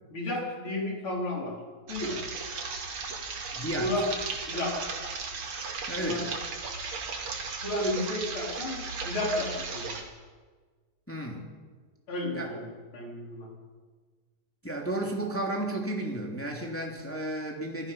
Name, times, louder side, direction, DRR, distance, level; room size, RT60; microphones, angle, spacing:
voice 1, 0.1-1.6 1.9-2.2 3.8-4.1 4.5-4.8 6.0-6.2 7.6-10.0 12.1-13.5, left 1 dB, 35° left, -2 dB, 5.1 m, -32 dB
sound 1, 1.9-10.0, right 4 dB, 45° right, 3.2 m, -36 dB
voice 2, 3.5-3.9 5.9-6.3 11.1-11.5 12.3-12.5 14.6-17.9, right 1 dB, 5° left, -1 dB, 2.3 m, -33 dB
26.0 x 17.5 x 5.7 m, 1.4 s
omnidirectional pair, 4.4 m